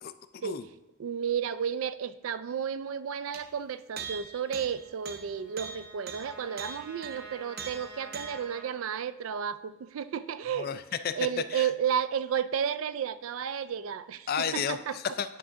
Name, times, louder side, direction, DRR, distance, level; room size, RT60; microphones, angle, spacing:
voice 1, 0.0-0.6 10.6-11.1 11.5-11.7 14.3-15.4, left 7 dB, 45° left, 12 dB, 0.3 m, -33 dB
voice 2, 1.0-10.8 11.2-15.0, right 8 dB, 70° right, 15 dB, 0.4 m, -32 dB
sound 1, 3.3-3.5 4.0-8.5, right 6 dB, 45° right, 0.7 m, -42 dB
Trumpet, 4.4-8.8, right 2 dB, 90° right, 0.9 m, -49 dB
9.7 x 3.6 x 5.6 m, 0.97 s
head